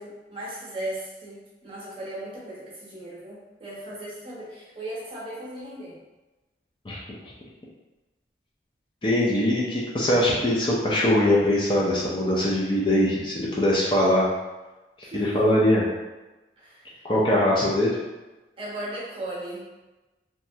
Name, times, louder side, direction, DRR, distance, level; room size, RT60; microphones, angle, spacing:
voice 1, 0.0-6.0 15.0-15.5 16.6-17.0 18.6-19.6, right 1 dB, 30° right, -7 dB, 0.8 m, -37 dB
voice 2, 9.0-14.3 15.1-15.8 17.0-18.0, left 1 dB, 25° left, -6 dB, 0.4 m, -22 dB
3.0 x 2.3 x 2.7 m, 1.1 s
head